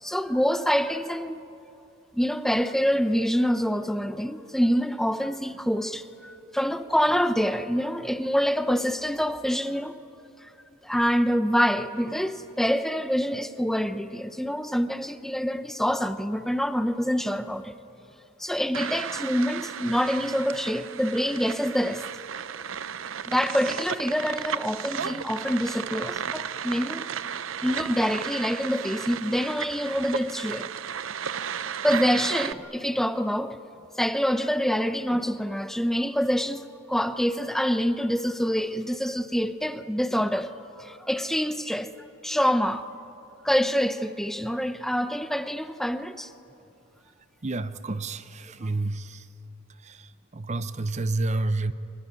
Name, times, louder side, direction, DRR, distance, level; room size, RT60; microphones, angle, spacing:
voice 1, 0.0-1.4 2.1-10.0 10.4-10.5 10.8-17.8 18.4-22.0 23.3-27.1 27.6-30.7 31.8-33.6 34.0-42.8 43.4-46.3, equal, ahead, 0.7 m, -26 dB
sound 1, 18.7-32.5, right 7 dB, 75° right, 0.7 m, -34 dB
voice 2, 47.4-49.3 49.8-51.7, right 2 dB, 35° right, 0.7 m, -30 dB
25.0 x 23.0 x 9.8 m
head